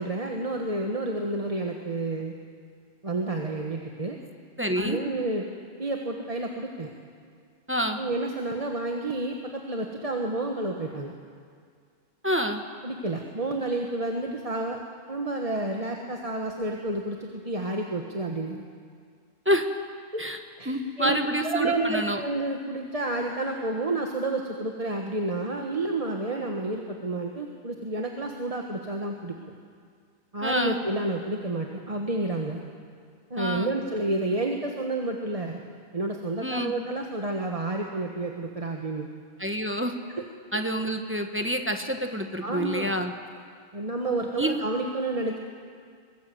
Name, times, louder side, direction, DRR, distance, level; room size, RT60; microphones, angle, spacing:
voice 1, 0.0-2.3 3.0-4.2 4.7-5.4 5.8-6.9 8.0-11.1 12.8-14.8 15.1-18.6 20.1-20.2 20.6-20.7 21.0-29.4 30.3-32.6 33.3-35.6 35.9-39.1 40.2-40.3 42.4-42.9 43.7-45.4, right 2 dB, 35° right, 1 dB, 1.4 m, -30 dB
voice 2, 4.6-5.0 7.7-8.0 12.2-12.6 19.4-19.7 20.2-20.4 20.7-22.2 30.4-30.8 33.4-33.7 36.4-36.7 39.4-39.9 40.5-43.1 44.4-44.6, equal, 10° right, 5 dB, 1.3 m, -27 dB
23.0 x 18.5 x 7.7 m, 2.1 s
omnidirectional pair, 1.1 m